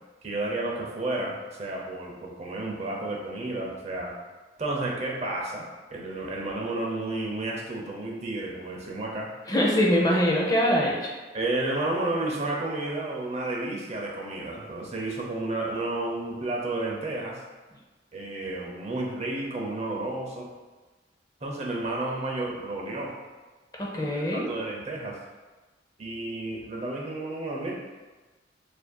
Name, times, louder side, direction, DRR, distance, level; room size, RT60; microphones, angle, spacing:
voice 1, 0.2-4.1 4.6-9.3 11.3-17.4 18.1-20.5 21.4-23.1 24.1-25.2 26.0-27.7, right 2 dB, 35° right, -2 dB, 0.6 m, -31 dB
voice 2, 9.5-11.1 23.8-24.5, equal, 20° left, -3 dB, 0.6 m, -23 dB
6.8 x 2.6 x 2.3 m, 1.2 s
head